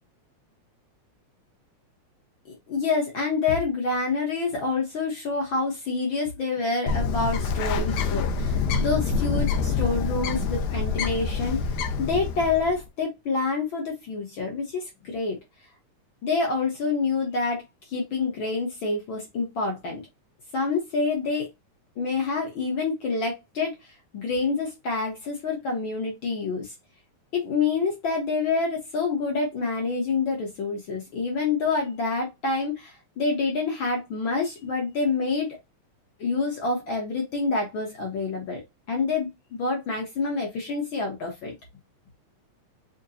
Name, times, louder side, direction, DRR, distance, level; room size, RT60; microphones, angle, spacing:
voice 1, 2.5-11.6 12.0-15.4 16.2-17.6 17.9-20.0 20.5-21.5 22.0-23.7 24.1-26.7 27.3-35.6 36.2-38.6 38.9-41.5, left 4 dB, 60° left, 1.4 m, -27 dB
Bird, 6.9-12.8, left 5 dB, 75° left, 1.9 m, -26 dB
6.4 x 2.2 x 2.7 m
omnidirectional pair, 3.4 m